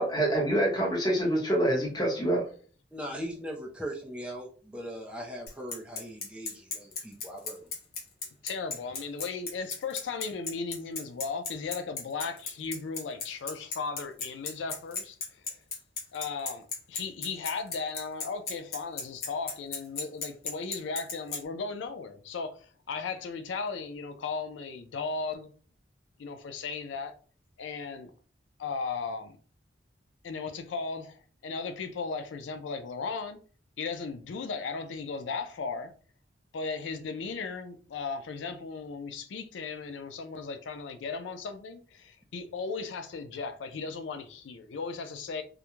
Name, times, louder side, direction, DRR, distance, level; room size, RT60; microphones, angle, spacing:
voice 1, 0.0-2.4, right 1 dB, 25° left, 0.8 m, -26 dB
voice 2, 2.9-7.6, equal, 5° right, 0.4 m, -39 dB
Bicycle, 5.5-21.4, left 4 dB, 55° left, 0.7 m, -35 dB
voice 3, 8.4-15.6 16.1-25.5 26.2-27.2 27.6-28.1 28.6-29.4 30.2-33.4 33.8-35.9 36.5-45.4, left 4 dB, 85° left, 0.4 m, -36 dB
2.3 x 2.1 x 2.9 m
head